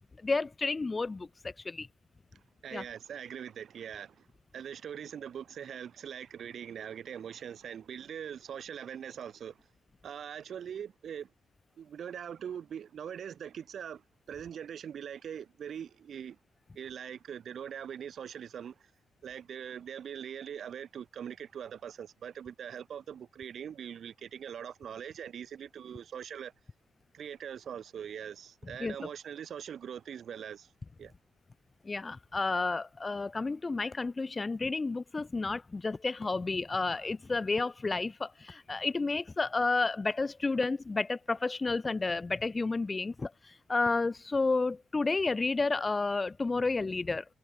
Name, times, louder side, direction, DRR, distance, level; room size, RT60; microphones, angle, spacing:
voice 1, 0.2-1.9 2.7-2.8 28.8-29.1 31.8-47.3, left 3 dB, 25° left, 0.6 m, -31 dB
voice 2, 2.3-4.3 4.5-9.7 10.0-11.3 11.8-16.4 16.8-18.9 19.2-26.5 27.1-30.7 31.0-31.1, right 8 dB, 60° right, 5.3 m, -42 dB
cardioid pair, 90°, 0 cm